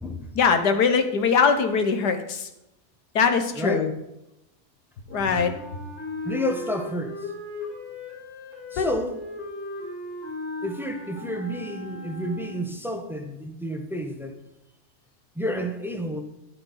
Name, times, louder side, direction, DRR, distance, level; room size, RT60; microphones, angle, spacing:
voice 1, 0.4-2.5 3.2-3.9 5.1-5.5 8.8-8.9, left 5 dB, 80° left, 7 dB, 1.8 m, -21 dB
Wind instrument woodwind instrument, 5.1-12.8, left 2 dB, 40° left, 4.1 m, -37 dB
voice 2, 6.2-7.3 8.7-9.2 10.6-14.3 15.3-16.2, equal, ahead, 4 dB, 1.0 m, -30 dB
11.5 x 7.8 x 5.7 m, 0.87 s
omnidirectional pair, 1.7 m